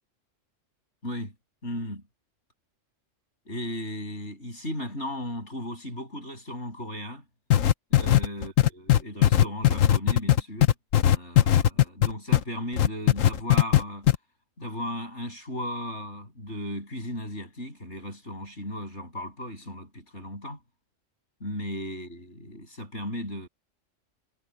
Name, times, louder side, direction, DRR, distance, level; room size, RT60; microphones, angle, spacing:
voice 1, 1.0-1.3 1.6-2.0 3.5-7.2 7.9-10.7 11.1-14.1 14.6-20.6 21.4-23.5, left 1 dB, 60° left, 8.2 m, -36 dB
sound 1, 7.5-12.4 12.8-13.8 14.1-14.2, left 12 dB, 85° left, 1.3 m, -18 dB
omnidirectional pair, 1.3 m